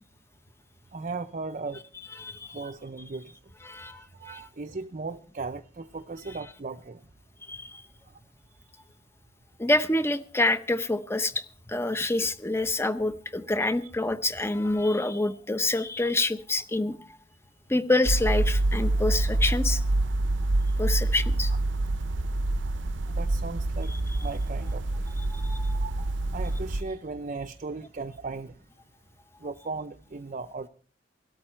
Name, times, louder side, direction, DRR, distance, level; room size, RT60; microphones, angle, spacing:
voice 1, 0.9-1.8 2.5-3.3 3.6-7.0 23.1-23.9 24.2-25.0 25.7-26.1 26.3-28.5 29.4-30.7, right 3 dB, 40° right, 7 dB, 0.6 m, -37 dB
voice 2, 2.2-2.6 3.6-4.4 7.5-7.8 9.6-17.0 17.7-19.8 20.8-21.5 25.3-25.8, left 2 dB, 15° left, 12 dB, 0.8 m, -27 dB
sound 1, 18.1-26.8, right 2 dB, 80° right, 0.7 m, -26 dB
18.0 x 13.0 x 4.5 m, 0.44 s
head